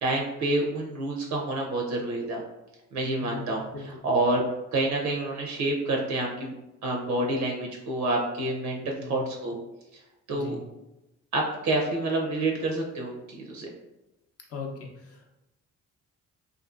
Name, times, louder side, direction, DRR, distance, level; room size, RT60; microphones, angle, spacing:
voice 1, 0.0-2.4 2.9-4.4 4.7-6.5 6.8-9.6 10.3-10.6 11.3-13.7, right 2 dB, 70° right, 0 dB, 0.5 m, -28 dB
voice 2, 3.2-3.9 9.0-9.2 10.3-10.6 14.5-15.3, left 4 dB, 50° left, 0 dB, 0.6 m, -39 dB
2.5 x 2.4 x 2.4 m, 0.96 s
cardioid pair, 90°, 30 cm